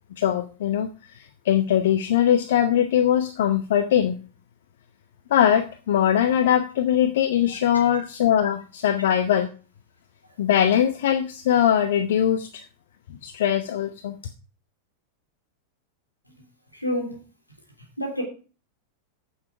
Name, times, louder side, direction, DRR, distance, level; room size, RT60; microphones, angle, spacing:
voice 1, 0.2-0.9 1.1-4.1 5.3-9.5 10.4-12.6 13.2-14.1, left 10 dB, 55° left, 0.8 m, -21 dB
voice 2, 16.7-17.2 18.0-18.2, equal, 85° left, 3.2 m, -28 dB
9.6 x 7.2 x 4.8 m
figure-of-eight pair, 90°, 0 cm